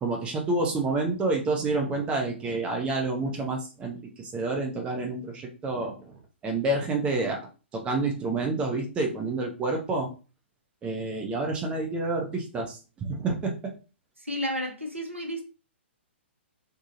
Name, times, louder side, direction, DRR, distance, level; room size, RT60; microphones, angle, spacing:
voice 1, 0.0-6.2 6.4-7.4 7.7-10.1 10.8-13.7, right 3 dB, 15° right, 0.6 m, -28 dB
voice 2, 14.2-15.4, equal, 90° right, 0.9 m, -32 dB
3.1 x 2.3 x 2.6 m
figure-of-eight pair, 120°, 7 cm